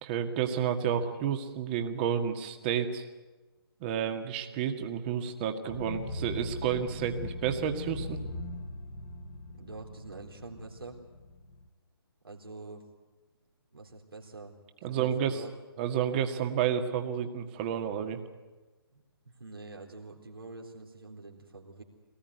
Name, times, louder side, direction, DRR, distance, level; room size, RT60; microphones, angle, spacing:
voice 1, 0.0-3.0 3.8-8.2 14.8-15.4 15.8-18.2, right 8 dB, 25° right, 6 dB, 1.9 m, -30 dB
sound 1, 5.7-11.7, left 2 dB, 25° left, 1.8 m, -40 dB
voice 2, 9.5-11.0 12.2-12.8 13.7-14.6 14.8-15.5 18.9-21.8, right 3 dB, 70° right, 0 dB, 3.8 m, -46 dB
24.0 x 19.0 x 9.5 m, 1.2 s
figure-of-eight pair, 140°, 13 cm